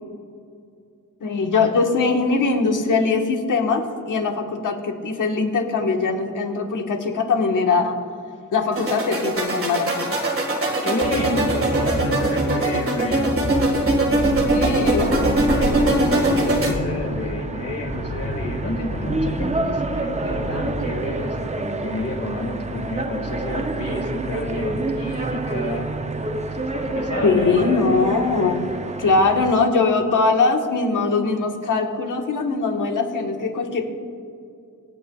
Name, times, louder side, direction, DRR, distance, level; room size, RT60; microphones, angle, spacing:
voice 1, 1.2-8.0 8.5-10.2 14.4-15.8 27.2-28.6 29.0-33.8, left 4 dB, 65° left, 3 dB, 1.4 m, -21 dB
sound 1, 8.7-16.7, right 2 dB, 40° right, 1.9 m, -21 dB
voice 2, 10.7-13.4 14.7-14.9 15.4-25.9 26.6-27.8, left 2 dB, 45° left, 3 dB, 1.9 m, -29 dB
sound 2, 11.0-12.3 13.1-17.1 17.9-19.5 20.3-20.6, left 1 dB, 25° left, 3.2 m, -29 dB
sound 3, 15.0-29.5, right 3 dB, 20° right, 0.5 m, -29 dB
25.5 x 8.9 x 2.4 m, 2.4 s
wide cardioid pair, 150°, 33 cm